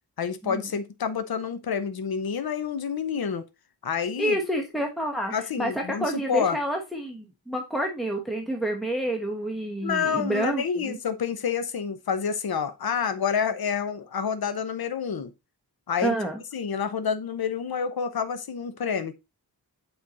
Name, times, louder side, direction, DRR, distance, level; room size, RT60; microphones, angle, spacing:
voice 1, 0.2-3.5 3.8-4.4 5.3-6.6 9.8-15.3 15.9-16.1 16.5-19.1, left 6 dB, 60° left, 0.9 m, -28 dB
voice 2, 4.2-11.0 16.0-16.4, right 1 dB, ahead, 1.1 m, -29 dB
7.7 x 4.4 x 4.1 m
wide cardioid pair, 125°, 41 cm